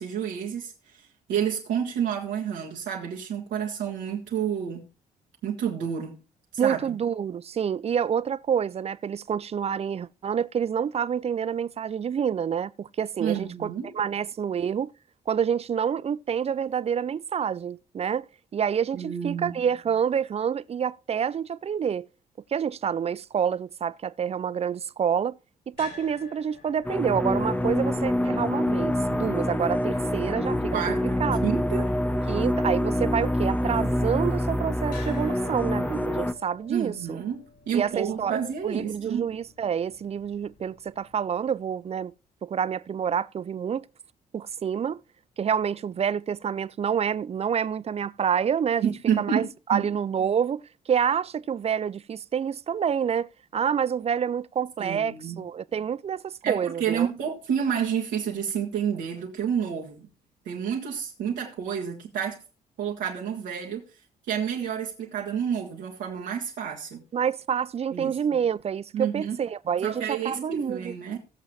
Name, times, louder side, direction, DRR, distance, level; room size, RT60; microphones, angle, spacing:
voice 1, 0.0-4.8 5.4-6.2 6.6-7.0 13.2-13.9 18.9-19.6 30.7-31.9 36.7-39.2 48.8-49.8 54.8-55.4 56.4-60.1 60.4-62.4 62.8-63.8 64.3-67.0 67.9-68.1 68.9-69.4 69.8-71.2, right 8 dB, 65° right, 1.7 m, -29 dB
voice 2, 6.6-14.9 15.3-18.3 18.5-22.1 22.5-25.4 25.7-31.4 32.3-37.2 37.7-42.1 42.4-43.9 44.3-45.0 45.4-57.1 67.1-70.9, right 7 dB, 30° right, 0.4 m, -28 dB
sound 1, 25.7-41.9, left 4 dB, 55° left, 5.4 m, -51 dB
sound 2, 26.8-36.3, left 1 dB, 10° left, 0.8 m, -26 dB
17.5 x 7.4 x 2.9 m
figure-of-eight pair, 40°, 21 cm